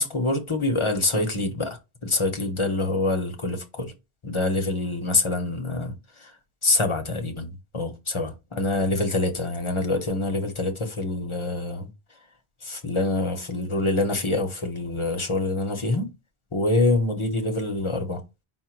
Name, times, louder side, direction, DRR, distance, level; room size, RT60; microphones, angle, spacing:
voice 1, 0.0-3.9 4.2-6.3 6.6-11.9 12.6-16.1 16.5-18.2, left 2 dB, 30° left, 0.7 m, -25 dB
5.0 x 2.2 x 4.4 m
omnidirectional pair, 1.1 m